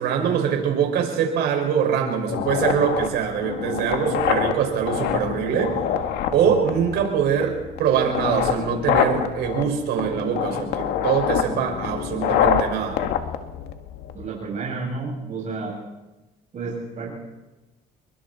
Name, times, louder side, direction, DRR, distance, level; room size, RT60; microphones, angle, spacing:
voice 1, 0.0-5.8 6.3-13.0, right 8 dB, 80° right, 2 dB, 5.8 m, -23 dB
sound 1, 2.3-14.3, left 9 dB, 85° left, 1.9 m, -26 dB
voice 2, 14.1-15.7 16.5-17.1, right 4 dB, 45° right, -4 dB, 7.2 m, -31 dB
28.0 x 23.0 x 4.3 m, 1.1 s
cardioid pair, 110°, 17 cm